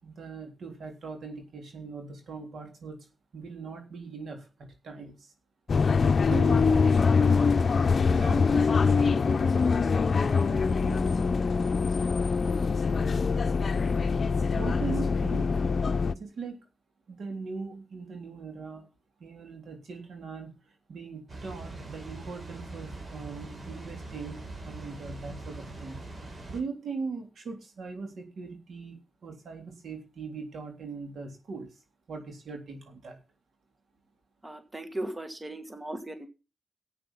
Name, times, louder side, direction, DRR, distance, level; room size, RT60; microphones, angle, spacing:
voice 1, 0.0-3.0 3.3-4.5 4.8-5.3 6.3-6.6 8.1-9.6 10.0-11.1 14.5-15.6 16.1-16.6 17.1-18.9 19.2-20.5 20.9-26.0 26.5-31.8 32.1-33.2, right 4 dB, 80° right, 4 dB, 3.6 m, -40 dB
sound 1, 5.7-16.1, left 5 dB, 55° left, 0.7 m, -24 dB
Water, 21.3-26.6, right 2 dB, 45° right, 4.2 m, -42 dB
voice 2, 34.4-36.3, right 1 dB, 20° right, 8 dB, 1.6 m, -37 dB
13.0 x 8.7 x 5.8 m, 0.31 s
cardioid pair, 85°, 0 cm